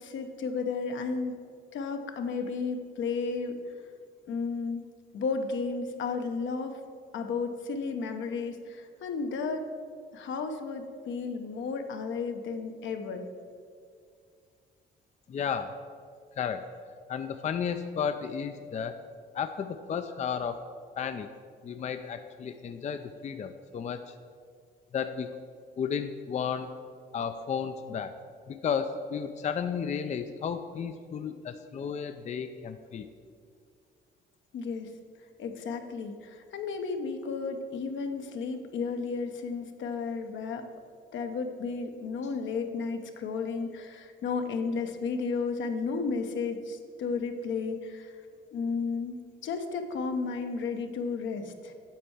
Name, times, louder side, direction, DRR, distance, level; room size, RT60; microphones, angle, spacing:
voice 1, 0.0-1.4 1.7-3.6 4.3-4.9 5.1-6.8 7.1-9.6 10.1-13.2 34.5-34.9 35.4-40.7 41.1-48.1 48.5-51.7, left 4 dB, 70° left, 6 dB, 0.9 m, -33 dB
voice 2, 15.3-15.8 16.4-16.6 17.1-19.0 19.3-20.6 21.0-21.3 21.6-24.1 24.9-25.3 25.8-26.7 27.1-28.2 28.5-33.1, left 7 dB, 35° left, 8 dB, 0.4 m, -33 dB
8.4 x 4.4 x 7.2 m, 2.1 s
cardioid pair, 90°, 20 cm